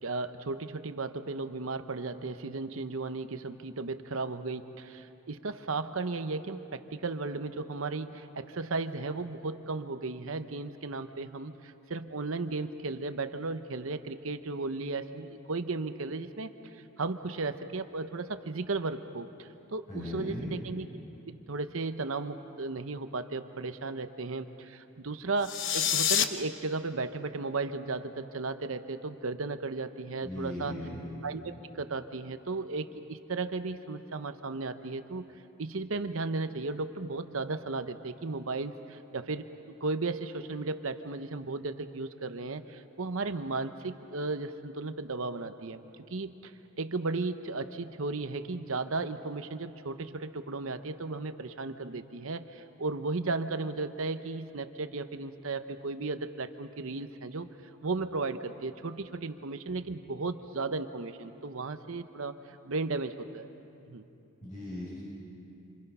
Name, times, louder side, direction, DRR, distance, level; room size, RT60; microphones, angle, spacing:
voice 1, 0.0-20.9 21.3-30.8 31.2-35.2 35.6-39.5 39.8-45.8 46.1-46.5 46.8-57.5 57.8-63.5 63.9-64.0, right 3 dB, 70° right, 10 dB, 0.8 m, -35 dB
voice 2, 19.9-20.4 30.2-31.0 64.4-64.9, left 1 dB, 35° left, -8 dB, 6.7 m, -38 dB
sound 1, 25.4-26.2, left 9 dB, 60° left, 0.9 m, -26 dB
27.5 x 26.0 x 5.6 m, 2.8 s
head